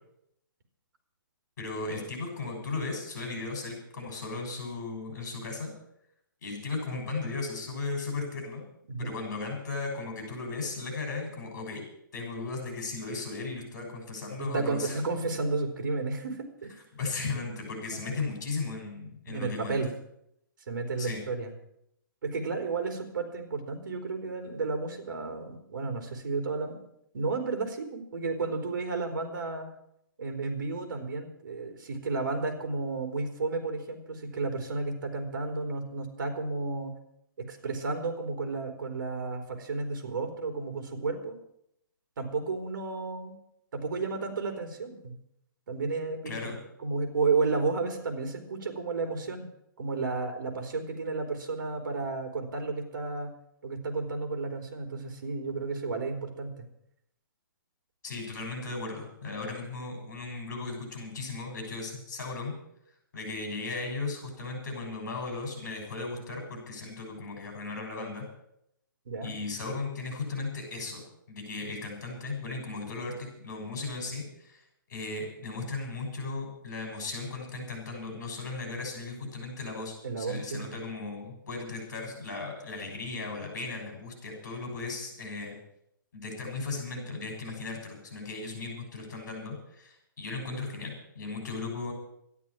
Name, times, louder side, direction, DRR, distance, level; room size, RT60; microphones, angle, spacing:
voice 1, 1.6-5.7 6.4-8.6 9.0-11.8 12.1-15.0 16.9-19.8 21.0-21.2 46.3-46.6 58.0-62.5 63.1-68.3 69.2-74.6 74.9-85.6 86.1-91.9, left 3 dB, 50° left, 3 dB, 7.0 m, -36 dB
voice 2, 14.4-16.8 17.9-18.2 19.3-19.9 20.7-21.5 22.2-26.8 27.1-29.7 30.2-36.9 37.4-41.4 42.2-43.4 43.7-45.2 45.7-46.5 46.8-49.5 49.8-53.3 53.6-56.7 69.1-69.3 80.0-80.7, right 3 dB, 60° right, 6 dB, 3.7 m, -32 dB
12.5 x 11.0 x 8.9 m, 0.77 s
hypercardioid pair, 170°, 12 cm